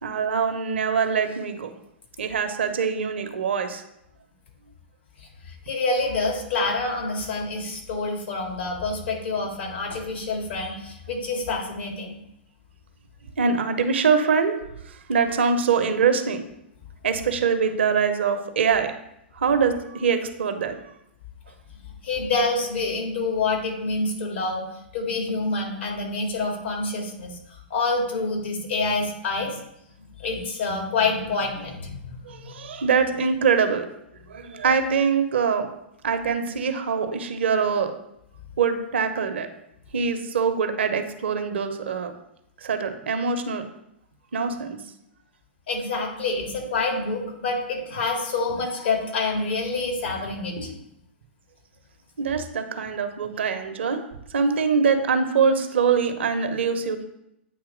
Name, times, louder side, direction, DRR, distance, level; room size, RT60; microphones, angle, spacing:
voice 1, 0.0-1.7 2.2-3.8 13.4-16.4 17.0-18.9 19.3-20.8 32.2-33.9 34.3-35.7 36.0-37.9 38.6-39.5 39.9-42.1 42.6-43.6 44.3-44.8 52.2-54.0 54.3-57.0, right 6 dB, 75° right, 8 dB, 0.8 m, -23 dB
voice 2, 5.2-12.2 22.0-24.6 24.9-29.6 30.2-32.6 45.7-50.7, left 3 dB, 70° left, 1 dB, 1.9 m, -27 dB
8.6 x 2.9 x 3.8 m, 0.81 s
hypercardioid pair, 110°, 6 cm